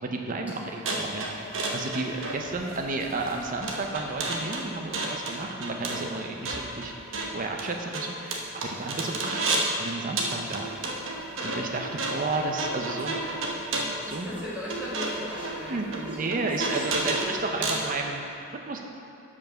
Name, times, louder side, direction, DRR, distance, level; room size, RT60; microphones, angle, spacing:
voice 1, 0.0-1.3 1.7-6.9 7.3-9.4 9.8-10.7 11.4-13.2 14.1-14.4 15.7-18.3 18.7-18.8, right 3 dB, 40° right, 2 dB, 0.6 m, -32 dB
sound 1, 0.8-9.8 10.2-17.9, right 2 dB, 65° right, 1.0 m, -31 dB
voice 2, 4.6-5.0 10.6-10.7 12.8-13.5 14.0-16.3 16.6-16.7 17.0-17.5, equal, 10° right, -10 dB, 1.9 m, -39 dB
7.1 x 5.2 x 6.1 m, 2.8 s
head